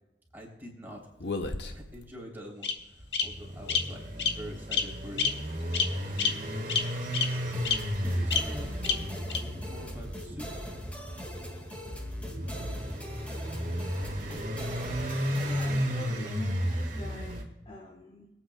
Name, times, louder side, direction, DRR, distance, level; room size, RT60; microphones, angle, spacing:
voice 1, 0.3-1.0 1.4-5.4 6.1-6.5 8.0-8.7 8.9-10.7, equal, 10° right, -2 dB, 3.4 m, -46 dB
Bird vocalization bird call bird song, 1.2-2.0 2.6-2.7 3.1-3.2 3.7-3.8 4.2-4.3 4.7-4.8 5.2-5.3 5.7-5.9 6.2-6.3 6.7-6.8 7.1-7.2 7.6-7.7 8.3-8.4 8.8-8.9 9.3-9.4, left 6 dB, 65° left, 1.1 m, -27 dB
sound 1, 3.0-17.4, equal, 45° right, 1.8 m, -34 dB
sound 2, 7.5-15.9, equal, 10° left, 1.9 m, -40 dB
voice 2, 15.4-18.3, left 1 dB, 30° left, -1 dB, 1.3 m, -43 dB
25.5 x 8.9 x 2.3 m, 0.95 s
head